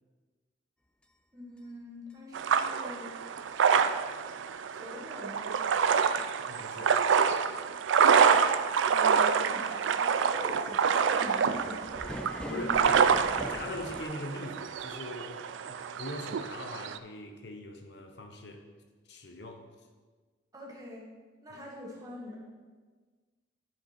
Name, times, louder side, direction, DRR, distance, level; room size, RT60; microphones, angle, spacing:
sound 1, 1.0-1.1 1.6-1.7 2.1-2.2 2.6-2.7 3.2-3.3 3.7-3.8 4.3-4.4 4.8-4.9 5.4-5.5 5.9-6.0 6.5-6.6 7.0-7.1 7.5-7.6 8.1-8.2 8.6-8.9 9.1-9.2 9.5-14.0, equal, 5° left, 0.3 m, -44 dB
voice 1, 1.3-3.1 4.7-5.6 8.8-12.0 12.4-13.0 20.5-21.1 21.4-22.4, left 1 dB, 20° right, -4 dB, 1.6 m, -43 dB
sound 2, 2.3-17.0, right 6 dB, 80° right, 0.4 m, -27 dB
voice 2, 6.5-7.1 12.5-13.0 13.3-15.4 15.7-18.6 19.1-19.6 21.5-21.6, left 1 dB, 60° left, 4 dB, 0.8 m, -41 dB
10.5 x 5.1 x 4.3 m, 1.4 s
head